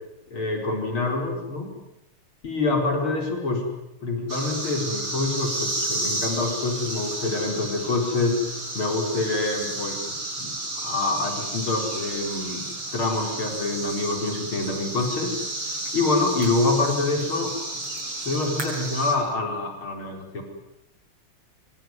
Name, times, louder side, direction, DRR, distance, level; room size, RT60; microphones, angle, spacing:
voice 1, 0.3-1.7 2.4-3.7 4.0-8.4 8.7-12.7 12.9-15.4 15.7-17.8 18.2-20.4, left 2 dB, 70° left, 3 dB, 5.5 m, -26 dB
sound 1, 4.3-19.1, right 2 dB, 80° right, 7.3 m, -32 dB
26.0 x 24.0 x 9.6 m, 0.88 s
omnidirectional pair, 2.4 m